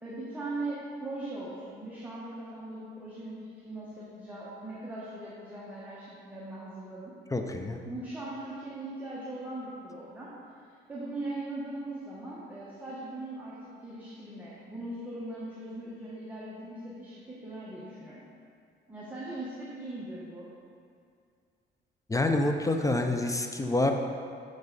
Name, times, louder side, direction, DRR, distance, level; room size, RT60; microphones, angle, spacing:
voice 1, 0.0-7.2 7.9-18.2 18.9-20.5, right 2 dB, 10° right, -8 dB, 1.4 m, -40 dB
voice 2, 7.3-7.8 22.1-23.9, left 2 dB, 15° left, 4 dB, 0.6 m, -27 dB
6.9 x 6.3 x 4.1 m, 2.3 s
cardioid pair, 90°, 20 cm